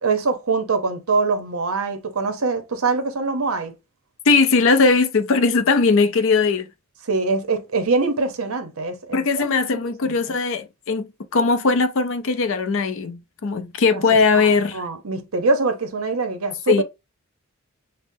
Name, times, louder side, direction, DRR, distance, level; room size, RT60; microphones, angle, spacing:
voice 1, 0.0-3.7 7.1-10.4 13.9-14.0 14.3-14.5 14.7-16.8, right 3 dB, 70° right, 0.8 m, -24 dB
voice 2, 4.3-6.7 9.1-14.9 16.7-16.8, left 4 dB, 60° left, 0.5 m, -19 dB
5.3 x 2.0 x 2.6 m
head